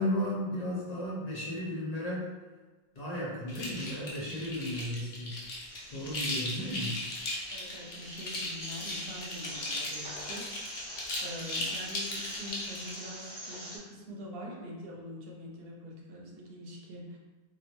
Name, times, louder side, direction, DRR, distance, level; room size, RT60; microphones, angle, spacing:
voice 1, 0.0-2.3 3.0-5.4 5.9-7.0, left 1 dB, 45° left, -6 dB, 0.6 m, -34 dB
sound 1, 3.5-13.0, left 2 dB, 85° left, 0.9 m, -37 dB
sound 2, 5.7-13.8, equal, 25° right, 0.6 m, -45 dB
voice 2, 7.5-10.9 11.2-17.2, equal, 70° right, -1 dB, 0.8 m, -44 dB
2.3 x 2.1 x 2.9 m, 1.2 s
omnidirectional pair, 1.0 m